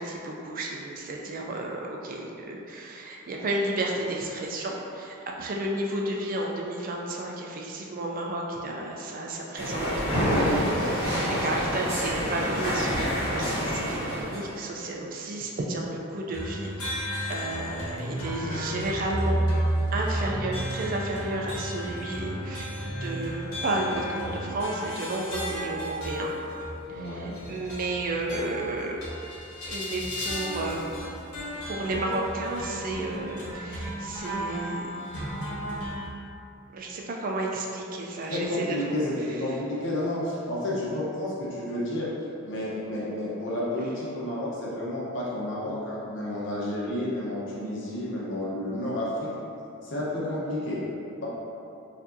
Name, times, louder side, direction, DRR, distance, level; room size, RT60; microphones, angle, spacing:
voice 1, 0.0-11.1 11.4-19.4 19.9-26.3 26.9-29.0 29.6-30.9 31.7-34.9 36.7-39.0 39.5-39.6, right 2 dB, 40° right, -1 dB, 0.3 m, -32 dB
sound 1, 9.6-14.5, equal, 15° right, 1.2 m, -27 dB
sound 2, 16.3-36.1, equal, 85° left, 1.1 m, -33 dB
voice 2, 26.9-27.3 38.3-42.1 42.4-49.3 49.8-50.8, left 1 dB, 55° left, -7 dB, 0.9 m, -31 dB
4.7 x 2.6 x 2.6 m, 2.7 s
head